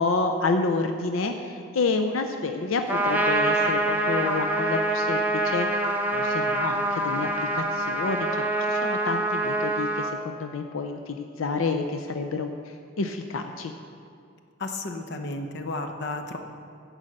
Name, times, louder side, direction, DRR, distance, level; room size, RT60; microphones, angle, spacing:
voice 1, 0.0-12.5 13.0-13.7, left 3 dB, 85° left, 6 dB, 0.5 m, -29 dB
Trumpet, 2.9-10.1, right 1 dB, 10° right, 0.6 m, -25 dB
voice 2, 14.6-16.4, left 2 dB, 55° left, 5 dB, 0.8 m, -32 dB
10.5 x 4.9 x 7.7 m, 2.4 s
head